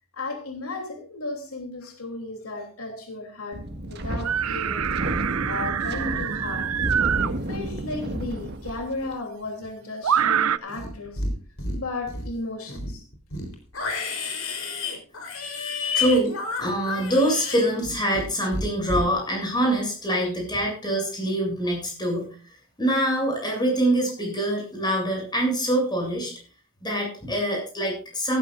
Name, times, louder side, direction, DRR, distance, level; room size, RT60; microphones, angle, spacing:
voice 1, 0.2-4.9 5.2-6.7 7.2-11.2 11.7-13.0, left 2 dB, 85° left, 3 dB, 3.2 m, -35 dB
Wind, 3.5-9.1, right 1 dB, 50° right, 1.8 m, -31 dB
sound 1, 4.2-7.3 8.7-8.8 10.0-10.6, right 8 dB, 75° right, 0.6 m, -25 dB
Livestock farm animals working animals, 10.7-11.3 11.6-12.3 12.7-18.3 18.5-19.0, left 3 dB, 70° left, 3.8 m, -30 dB
voice 2, 15.9-22.3 22.8-26.3 26.8-28.4, right 1 dB, 20° left, 1 dB, 7.7 m, -24 dB
16.0 x 14.0 x 2.6 m, 0.38 s
head